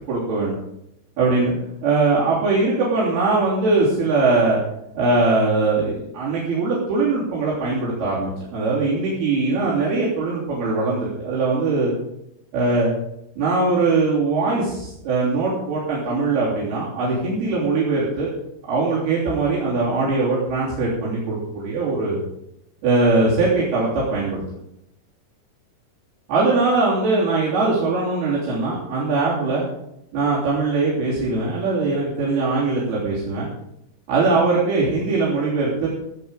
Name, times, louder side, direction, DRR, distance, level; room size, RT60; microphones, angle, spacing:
voice 1, 0.1-0.6 1.2-1.6 1.8-4.6 5.0-11.9 12.5-12.9 13.4-18.3 18.7-22.2 22.8-24.4 26.3-29.6 30.1-33.5 34.1-35.9, right 3 dB, 75° right, -8 dB, 5.3 m, -21 dB
16.5 x 8.8 x 5.2 m, 0.82 s
omnidirectional pair, 4.5 m